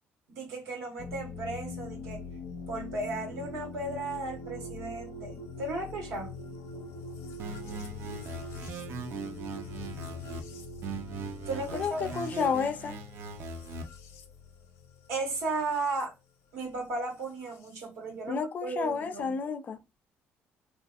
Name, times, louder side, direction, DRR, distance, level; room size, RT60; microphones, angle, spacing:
voice 1, 0.3-2.2 2.7-6.3 11.5-12.0 15.1-16.1 16.5-19.4, right 3 dB, 85° right, 1.4 m, -35 dB
sound 1, 1.0-16.1 17.2-17.8, left 3 dB, 80° left, 0.6 m, -43 dB
sound 2, 7.4-10.4 10.8-13.8, right 4 dB, 60° right, 0.4 m, -40 dB
voice 2, 11.7-13.0 18.3-19.8, left 6 dB, 35° left, 0.3 m, -31 dB
2.7 x 2.5 x 2.3 m
cardioid pair, 155°, 5 cm